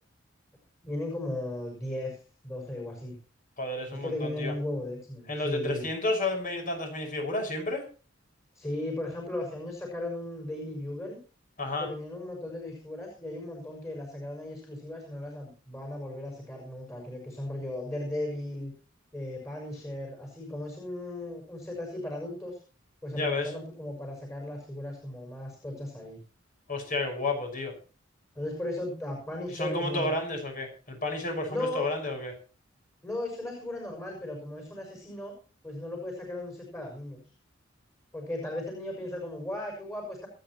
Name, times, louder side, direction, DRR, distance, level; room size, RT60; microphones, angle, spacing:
voice 1, 0.8-3.1 3.9-5.9 8.5-11.2 11.8-18.7 19.1-22.6 23.0-26.2 28.3-30.2 31.5-31.9 33.0-35.3 35.6-37.2 38.1-40.3, left 1 dB, 15° left, 1 dB, 6.1 m, -36 dB
voice 2, 3.6-4.5 5.3-7.8 11.6-11.9 23.1-23.5 26.7-27.7 29.5-32.3, left 2 dB, 45° left, 3 dB, 5.9 m, -31 dB
27.5 x 9.3 x 3.1 m, 0.35 s
head